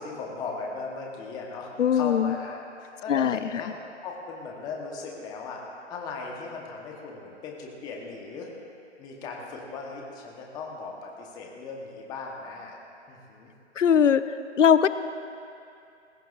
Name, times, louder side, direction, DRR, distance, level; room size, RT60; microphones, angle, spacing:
voice 1, 0.0-3.7 4.0-5.6 5.9-8.5 9.0-12.8 13.1-13.5, left 4 dB, 10° left, -1 dB, 1.0 m, -38 dB
voice 2, 1.8-2.4 3.1-3.6 13.8-14.2 14.6-14.9, left 8 dB, 85° left, 13 dB, 0.6 m, -20 dB
19.5 x 16.0 x 2.5 m, 2.6 s
hypercardioid pair, 150°, 36 cm